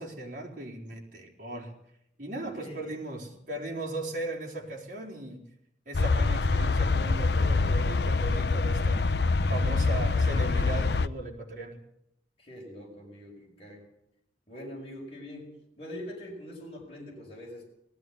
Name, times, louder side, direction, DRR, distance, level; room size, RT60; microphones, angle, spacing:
voice 1, 0.0-1.7 2.2-5.5 5.9-9.1 9.5-11.8, right 2 dB, 50° right, 0 dB, 4.6 m, -37 dB
voice 2, 2.5-2.9 12.4-13.9 14.5-17.6, left 1 dB, 35° left, -2 dB, 6.4 m, -43 dB
sound 1, 5.9-11.1, left 3 dB, 70° left, 0.7 m, -25 dB
18.5 x 15.0 x 9.7 m, 0.76 s
head